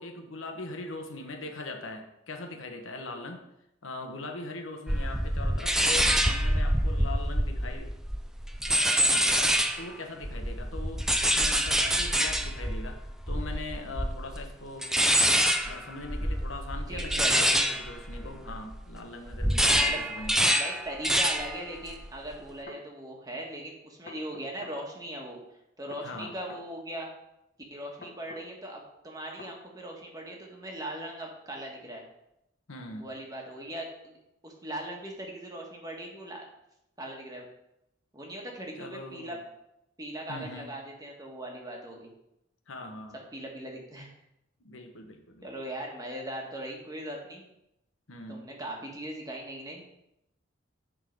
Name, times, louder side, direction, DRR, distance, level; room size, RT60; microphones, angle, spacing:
voice 1, 0.0-3.5 3.8-7.9 8.7-13.0 13.3-14.9 15.6-20.4 26.0-26.3 32.7-33.1 38.8-39.4 40.3-40.7 42.7-43.2 44.6-45.5 48.1-48.5, left 2 dB, 85° left, 4 dB, 1.1 m, -41 dB
sound 1, 4.9-9.9 10.2-18.9 19.3-21.6 21.9-22.3, equal, 5° right, 0.4 m, -26 dB
voice 2, 16.9-17.6 18.2-18.5 19.8-20.0 20.5-25.4 25.8-27.1 27.7-32.0 33.0-34.2 34.4-36.4 37.0-37.5 38.1-39.4 40.0-42.1 43.3-44.1 45.4-47.4 48.3-49.8, right 1 dB, 20° right, 0 dB, 1.4 m, -39 dB
sound 2, 21.1-21.2 22.4-22.8 24.1-24.8 25.9-26.7 28.0-28.5 29.4-29.6, left 3 dB, 45° left, 1.2 m, -47 dB
9.8 x 3.8 x 5.2 m, 0.84 s
head